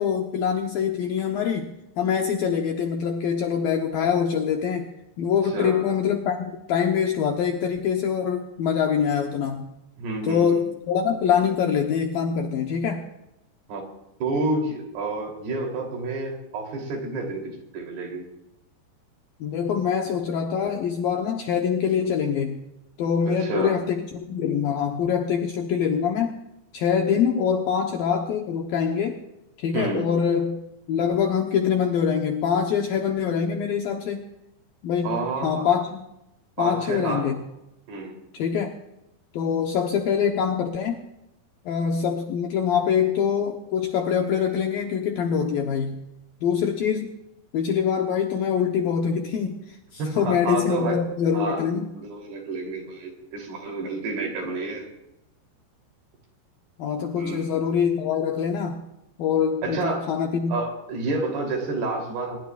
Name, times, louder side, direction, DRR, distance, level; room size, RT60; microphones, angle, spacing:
voice 1, 0.0-4.9 5.2-9.7 10.2-13.0 19.4-22.7 23.0-26.4 26.7-29.2 29.6-30.6 30.9-34.2 34.8-36.0 36.6-37.4 38.3-38.7 39.3-41.0 41.7-46.0 46.4-47.1 47.5-51.9 56.8-58.8 59.2-60.5, left 7 dB, 70° left, 2 dB, 2.3 m, -24 dB
voice 2, 5.5-5.9 10.0-10.6 13.7-13.8 14.2-18.3 23.5-23.8 29.7-30.1 35.0-35.7 36.6-37.3 37.9-38.2 50.0-51.0 51.3-51.6 52.0-54.9 57.2-57.6 59.6-60.1 60.5-62.4, right 3 dB, 60° right, 1 dB, 5.2 m, -29 dB
23.5 x 21.0 x 2.5 m, 0.89 s
omnidirectional pair, 5.3 m